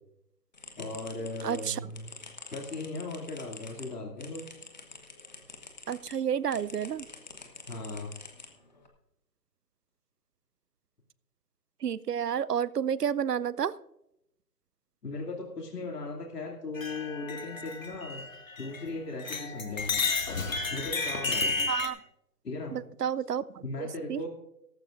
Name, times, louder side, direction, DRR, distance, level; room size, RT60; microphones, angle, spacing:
sound 1, 0.5-6.2 6.5-8.9, left 3 dB, 25° left, 1.2 m, -47 dB
voice 1, 0.8-2.1 2.5-4.4 7.7-8.1 15.0-18.2 18.6-19.9 20.7-21.7 22.4-22.7 23.6-24.3, left 2 dB, 70° left, 0 dB, 2.5 m, -37 dB
voice 2, 1.4-1.8 5.9-7.1 11.8-13.8 21.7-22.0 22.7-24.2, right 8 dB, 70° right, 19 dB, 0.6 m, -30 dB
sound 2, 16.8-18.9 19.2-21.9, left 4 dB, 50° left, 1.9 m, -32 dB
17.0 x 14.5 x 2.5 m, 0.83 s
hypercardioid pair, 175°, 50 cm